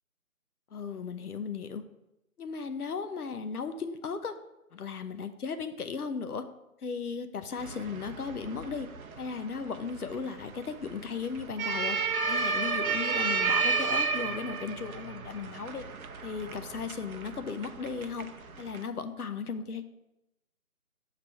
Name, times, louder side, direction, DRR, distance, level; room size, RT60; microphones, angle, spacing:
voice 1, 0.7-1.8 2.4-4.3 4.7-6.4 6.8-8.9 9.2-12.0 12.3-15.8 16.2-18.3 18.6-19.8, left 5 dB, 80° left, 9 dB, 0.8 m, -36 dB
sound 1, 7.6-18.8, right 4 dB, 70° right, 0.6 m, -33 dB
5.9 x 3.2 x 5.6 m, 0.91 s
figure-of-eight pair, 175°, 44 cm